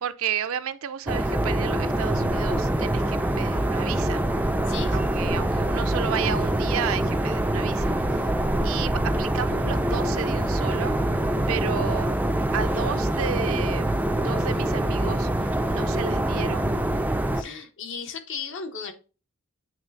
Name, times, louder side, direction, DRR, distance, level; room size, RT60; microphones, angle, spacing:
voice 1, 0.0-4.2 4.9-8.3 8.6-10.9 11.5-12.1 12.5-16.7, right 8 dB, 65° right, 0.5 m, -32 dB
sound 1, 1.1-17.4, right 1 dB, 5° right, 0.3 m, -25 dB
voice 2, 4.7-5.0 17.4-18.9, left 5 dB, 55° left, 0.9 m, -35 dB
8.1 x 3.2 x 4.0 m
head